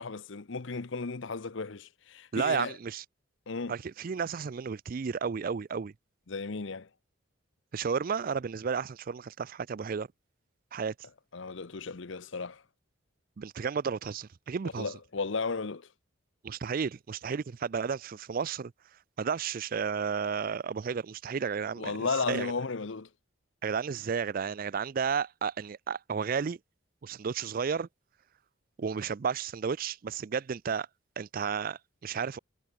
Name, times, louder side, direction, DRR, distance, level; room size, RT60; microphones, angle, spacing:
voice 1, 0.0-2.7 3.5-3.7 6.3-6.9 11.3-12.6 14.8-15.9 21.8-23.1, left 4 dB, 65° left, 0.8 m, -34 dB
voice 2, 2.3-3.0 3.7-5.9 7.7-10.1 10.7-10.9 13.4-14.9 16.4-18.7 19.2-22.5 23.6-26.6 27.0-27.9 28.8-30.9 31.2-32.4, right 6 dB, 45° right, 0.4 m, -32 dB
head